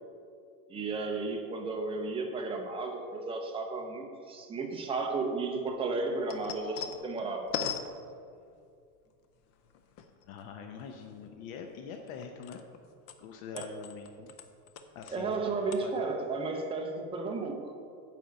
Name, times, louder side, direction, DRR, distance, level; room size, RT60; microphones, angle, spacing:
voice 1, 0.7-7.5 13.5-13.7 15.1-17.7, right 3 dB, 10° right, 2 dB, 0.6 m, -33 dB
sound 1, 5.7-8.7 9.4-10.4 10.8-12.8 13.1-15.4 15.7-15.8, left 7 dB, 35° left, 0.5 m, -41 dB
voice 2, 10.2-12.6 13.2-14.3 14.9-16.1, left 6 dB, 60° left, 5 dB, 0.8 m, -44 dB
9.9 x 4.6 x 6.8 m, 2.4 s
supercardioid pair, 160°, 48 cm